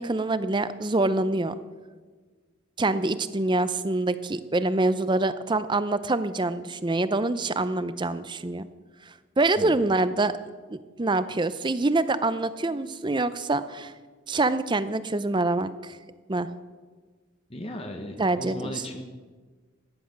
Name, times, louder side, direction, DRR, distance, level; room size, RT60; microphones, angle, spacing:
voice 1, 0.0-1.5 2.8-8.7 9.4-10.3 10.7-13.9 14.3-16.0 16.3-16.5 18.2-18.7, right 2 dB, 25° right, 13 dB, 0.6 m, -25 dB
voice 2, 17.5-19.0, left 1 dB, 30° left, 4 dB, 1.0 m, -37 dB
14.5 x 10.5 x 6.6 m, 1.4 s
head